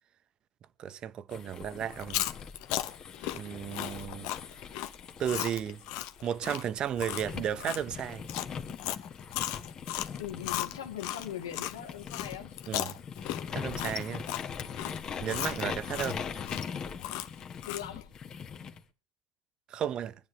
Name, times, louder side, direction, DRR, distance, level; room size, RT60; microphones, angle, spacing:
voice 1, 0.8-2.2 3.3-4.3 5.2-5.8 6.2-8.3 12.7-12.9 13.5-14.3 15.2-16.3 19.7-20.1, right 9 dB, 45° right, 0.9 m, -34 dB
sound 1, 1.3-6.7 7.2-18.8, left 6 dB, 35° left, 1.8 m, -41 dB
Chewing mastication, 1.9-11.7 12.1-18.0, left 14 dB, 65° left, 1.0 m, -36 dB
voice 2, 10.2-12.6 17.7-18.1, left 10 dB, 85° left, 1.9 m, -40 dB
24.5 x 9.6 x 3.4 m
hypercardioid pair, 85°, 2 cm